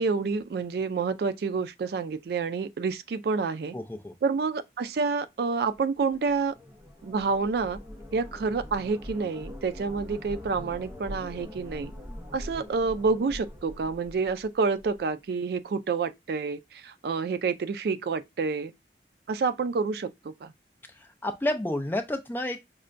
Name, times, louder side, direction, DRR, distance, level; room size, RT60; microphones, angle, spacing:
voice 1, 0.0-3.7 4.2-6.5 7.0-7.8 8.1-11.9 12.3-18.7 19.3-20.5, right 4 dB, 60° right, 0.3 m, -28 dB
voice 2, 3.7-4.1 21.2-22.7, left 1 dB, 10° left, 0.4 m, -30 dB
sound 1, 5.8-15.0, left 1 dB, 10° right, 0.7 m, -43 dB
5.5 x 2.1 x 2.5 m
head